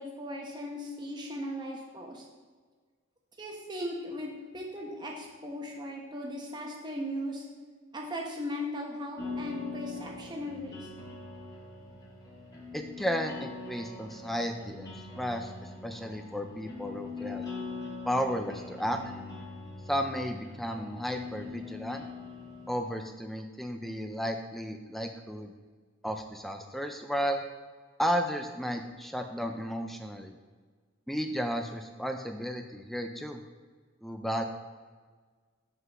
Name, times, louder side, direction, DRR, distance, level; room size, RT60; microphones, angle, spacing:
voice 1, 0.0-2.2 3.4-7.5 7.9-10.9, left 1 dB, 20° right, -1 dB, 1.0 m, -38 dB
sound 1, 9.2-22.8, left 3 dB, 20° left, 1.2 m, -42 dB
voice 2, 12.7-17.4 18.1-19.1 19.9-22.1 22.7-25.5 26.0-27.4 28.0-30.4 31.1-33.4 34.0-34.4, equal, ahead, 5 dB, 0.4 m, -33 dB
5.5 x 3.9 x 6.0 m, 1.5 s
head